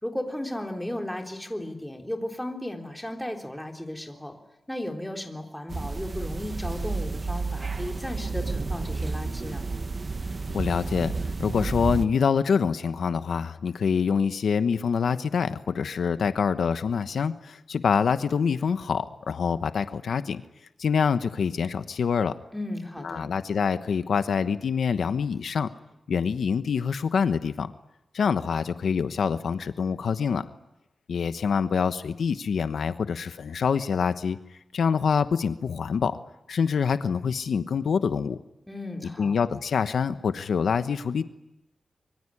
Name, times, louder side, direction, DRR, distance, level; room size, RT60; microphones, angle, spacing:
voice 1, 0.0-4.3 4.7-9.7 22.5-23.2 38.7-39.4, left 1 dB, 5° left, 3 dB, 3.6 m, -35 dB
sound 1, 5.7-12.1, right 3 dB, 35° right, 1.2 m, -31 dB
voice 2, 10.5-11.1 11.4-20.4 20.8-22.4 23.0-25.7 26.1-27.7 28.1-30.5 31.1-36.2 36.5-38.4 39.2-41.3, left 6 dB, 85° left, 11 dB, 1.1 m, -25 dB
25.0 x 23.5 x 9.9 m, 0.91 s
wide cardioid pair, 160°, 0 cm